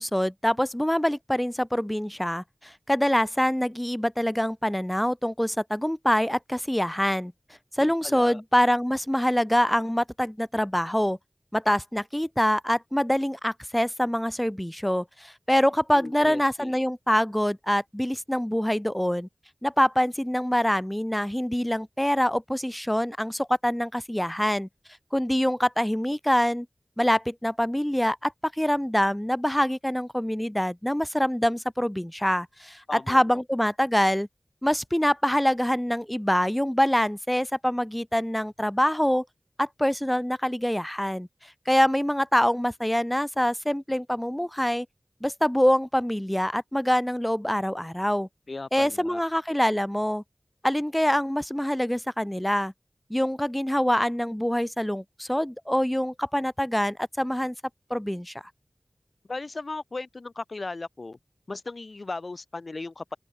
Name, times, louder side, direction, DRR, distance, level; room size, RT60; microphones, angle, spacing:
voice 1, 0.0-7.3 7.7-11.2 11.5-19.3 19.6-24.7 25.1-26.7 27.0-34.3 34.6-39.2 39.6-44.9 45.2-48.3 48.7-50.2 50.6-52.7 53.1-57.5 57.9-58.3, equal, 10° left, 2.1 m, -25 dB
voice 2, 7.8-8.4 15.9-16.8 32.9-33.4 48.5-49.2 59.3-61.2 61.5-63.2, left 3 dB, 70° left, 5.0 m, -37 dB
open air
wide cardioid pair, 45°, 0 cm